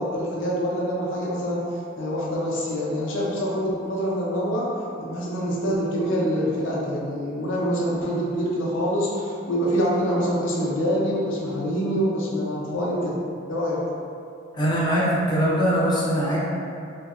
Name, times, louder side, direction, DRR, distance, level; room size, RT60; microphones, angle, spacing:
voice 1, 0.0-1.6 2.0-4.7 5.0-13.2 13.5-13.8, equal, 85° left, -5 dB, 0.6 m, -25 dB
voice 2, 14.5-16.4, equal, 25° left, -7 dB, 0.6 m, -22 dB
2.9 x 2.7 x 2.4 m, 2.5 s
head